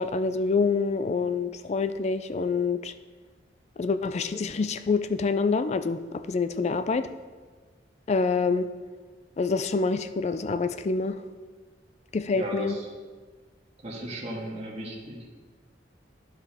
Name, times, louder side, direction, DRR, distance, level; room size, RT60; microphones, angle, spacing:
voice 1, 0.0-2.9 3.8-7.1 8.1-8.7 9.4-11.2 12.1-12.7, left 4 dB, 35° left, 11 dB, 0.3 m, -26 dB
voice 2, 12.3-12.9 13.8-15.3, right 1 dB, 35° right, -4 dB, 1.7 m, -35 dB
12.5 x 4.9 x 3.5 m, 1.4 s
head